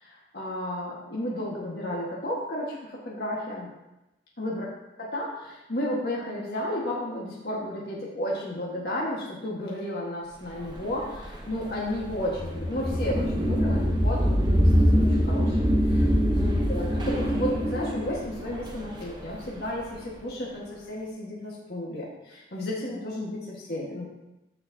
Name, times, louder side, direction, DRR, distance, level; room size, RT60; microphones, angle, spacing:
voice 1, 0.0-3.7 4.4-4.6 5.0-15.6 15.9-24.1, left 1 dB, 65° left, -5 dB, 1.6 m, -33 dB
sound 1, 10.7-19.7, equal, 25° right, 0.9 m, -24 dB
14.0 x 4.8 x 2.8 m, 0.98 s
head